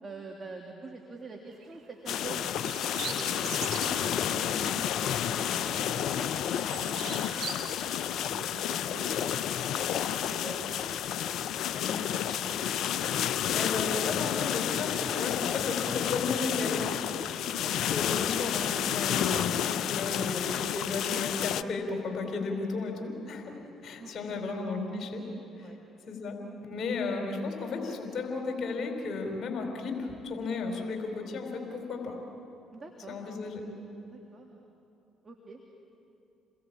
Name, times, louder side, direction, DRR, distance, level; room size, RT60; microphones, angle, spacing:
voice 1, 0.0-7.6 8.3-11.3 12.2-12.8 17.5-17.8 22.5-22.7 24.0-24.5 25.6-25.8 32.7-33.3 34.0-34.6 35.2-35.6, right 3 dB, 35° right, 1 dB, 3.1 m, -46 dB
sound 1, 1.5-1.7 2.5-4.1 4.6-4.7 5.1-5.9 6.2-7.6, right 6 dB, 60° right, 4.1 m, -40 dB
sound 2, 2.1-21.6, left 10 dB, 60° left, 0.6 m, -30 dB
voice 2, 11.5-12.0 12.6-12.7 13.5-16.8 17.9-23.6 23.8-25.2 25.6-25.7 26.1-32.2 33.1-33.7, left 4 dB, 45° left, 2 dB, 4.3 m, -34 dB
28.5 x 21.5 x 8.8 m, 2.8 s
hypercardioid pair, 50°, 0 cm